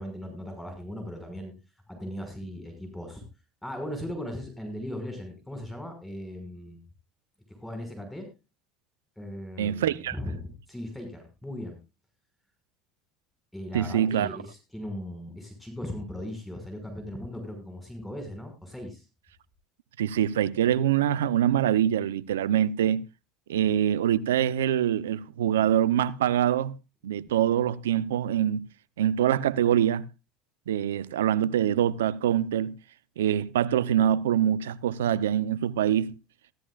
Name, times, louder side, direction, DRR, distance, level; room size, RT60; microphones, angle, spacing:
voice 1, 0.0-1.5 1.9-3.2 3.6-6.8 7.5-8.3 9.2-11.8 13.5-19.0, left 1 dB, 5° left, 5.7 m, -38 dB
voice 2, 9.6-10.2 13.7-14.3 20.0-23.0 23.5-26.7 27.0-28.7 29.0-30.0 30.7-32.7 33.2-36.1, right 10 dB, 90° right, 0.7 m, -24 dB
15.5 x 14.0 x 2.4 m
hypercardioid pair, 80°, 0 cm